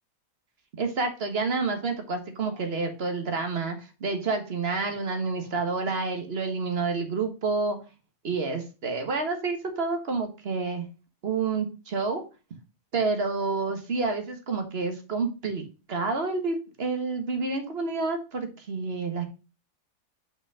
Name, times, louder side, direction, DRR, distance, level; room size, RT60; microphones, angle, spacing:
voice 1, 0.8-7.8 8.2-10.9 11.2-12.2 12.9-15.6 15.9-19.3, right 4 dB, 40° right, 6 dB, 1.5 m, -29 dB
5.5 x 5.2 x 4.8 m, 0.31 s
omnidirectional pair, 1.7 m